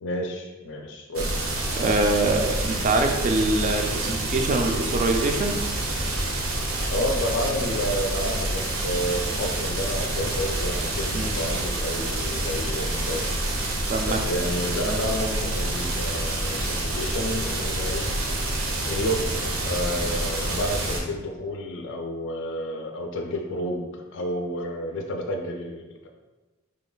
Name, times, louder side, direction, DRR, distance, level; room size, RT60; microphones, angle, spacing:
voice 1, 0.0-1.3 6.9-13.2 14.0-18.3 18.9-25.8, equal, 60° left, 2 dB, 0.4 m, -30 dB
sound 1, 1.1-21.0, right 1 dB, 80° right, 0.7 m, -27 dB
voice 2, 1.7-5.6 11.1-11.4 13.9-14.2 14.9-15.0, right 2 dB, 35° right, 4 dB, 0.3 m, -24 dB
3.2 x 2.2 x 3.8 m, 1.2 s
head